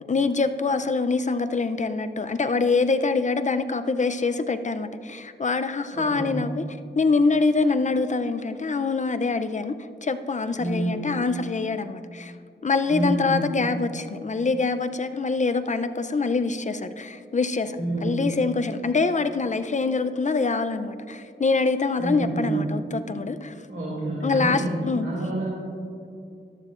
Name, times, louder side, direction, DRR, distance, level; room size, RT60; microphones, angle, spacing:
voice 1, 0.1-6.6 6.9-12.3 12.6-23.5 24.2-25.1, left 4 dB, 35° left, 10 dB, 0.5 m, -25 dB
voice 2, 5.9-6.4 10.6-11.0 12.9-13.4 17.7-18.2 22.0-22.6 23.7-24.7 25.0-25.5, right 2 dB, 65° right, -7 dB, 2.5 m, -28 dB
14.0 x 11.5 x 2.5 m, 2.5 s
wide cardioid pair, 70°, 21 cm